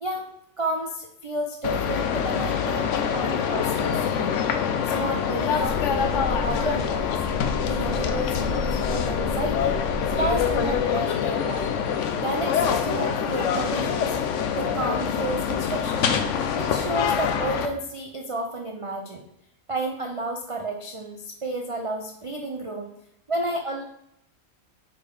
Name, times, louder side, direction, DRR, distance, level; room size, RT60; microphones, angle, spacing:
voice 1, 0.0-0.3 0.6-4.4 4.8-7.2 7.7-9.8 10.2-11.7 12.2-14.2 14.5-16.2 16.5-19.2 19.7-22.9 23.3-23.8, right 1 dB, 45° right, 2 dB, 0.4 m, -31 dB
sound 1, 1.6-17.7, left 7 dB, 65° left, 0.9 m, -25 dB
sound 2, 5.5-10.8, left 2 dB, 85° left, 1.3 m, -32 dB
5.1 x 5.0 x 4.7 m, 0.76 s
omnidirectional pair, 1.5 m